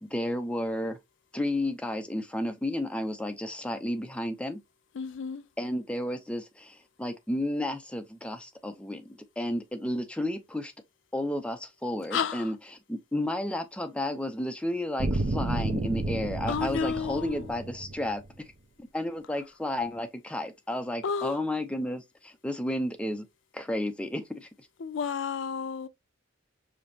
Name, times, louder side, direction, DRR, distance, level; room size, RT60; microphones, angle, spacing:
voice 1, 0.0-1.0 1.3-4.6 5.6-10.7 11.1-18.2 18.8-23.3 23.5-24.5, left 1 dB, 5° left, 0.5 m, -32 dB
voice 2, 5.0-5.4 12.1-12.5 16.5-17.5 21.0-21.4 24.8-25.9, left 6 dB, 70° left, 0.4 m, -31 dB
sound 1, 15.0-18.2, right 2 dB, 55° right, 0.8 m, -31 dB
5.1 x 2.9 x 2.7 m
head